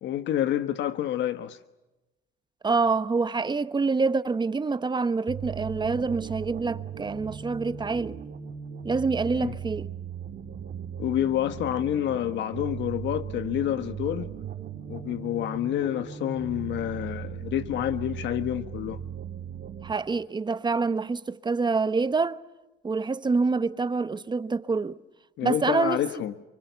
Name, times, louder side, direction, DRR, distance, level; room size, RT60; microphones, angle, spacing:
voice 1, 0.0-1.6 9.3-9.6 11.0-14.3 14.9-19.0 25.4-26.3, left 11 dB, 75° left, 1.3 m, -28 dB
voice 2, 2.6-8.2 8.8-9.9 19.8-22.4 22.8-25.0 25.4-26.0, right 4 dB, 25° right, 1.1 m, -26 dB
sound 1, 5.3-19.9, right 8 dB, 55° right, 2.6 m, -38 dB
29.0 x 25.0 x 7.0 m
cardioid pair, 110°, 19 cm